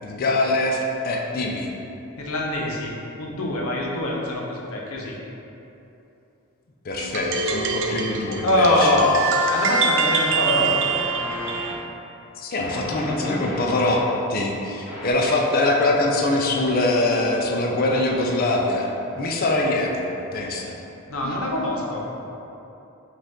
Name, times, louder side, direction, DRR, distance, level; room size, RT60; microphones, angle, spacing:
voice 1, 0.0-1.7 6.8-9.0 12.4-14.0 14.3-20.7 21.2-21.4, left 2 dB, 45° left, 0 dB, 0.4 m, -23 dB
voice 2, 2.2-5.2 8.4-10.9 21.1-22.3, left 1 dB, 85° left, -3 dB, 0.7 m, -24 dB
sound 1, 7.0-11.7, right 3 dB, 60° right, 0.4 m, -24 dB
sound 2, 10.3-11.8 12.6-14.1 14.9-15.1, left 1 dB, 5° right, 1.2 m, -34 dB
5.1 x 2.5 x 3.5 m, 2.9 s
head